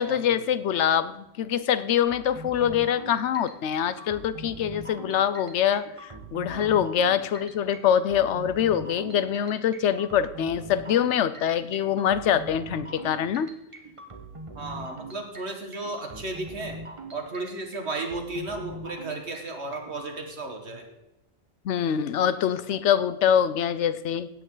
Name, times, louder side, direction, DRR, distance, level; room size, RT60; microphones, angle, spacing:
voice 1, 0.0-13.5 21.6-24.3, left 9 dB, 75° left, 14 dB, 0.9 m, -24 dB
sound 1, 2.0-20.1, right 2 dB, 25° right, 1.3 m, -42 dB
voice 2, 14.6-16.8 17.1-20.9, right 2 dB, 65° right, 3 dB, 2.0 m, -34 dB
16.0 x 8.7 x 3.9 m, 0.90 s
omnidirectional pair, 1.2 m